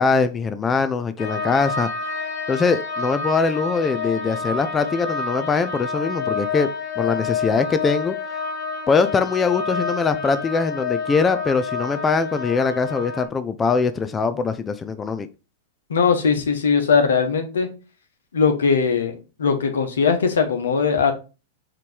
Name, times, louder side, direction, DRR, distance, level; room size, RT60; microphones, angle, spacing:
voice 1, 0.0-1.9 2.5-6.7 7.0-8.2 8.9-15.3, left 4 dB, 20° left, 11 dB, 0.5 m, -22 dB
sound 1, 1.2-13.3, left 4 dB, 50° left, 1.6 m, -28 dB
voice 2, 15.9-17.7 18.3-21.1, left 5 dB, 80° left, 6 dB, 1.4 m, -20 dB
5.7 x 3.2 x 5.3 m, 0.32 s
hypercardioid pair, 115°, 0 cm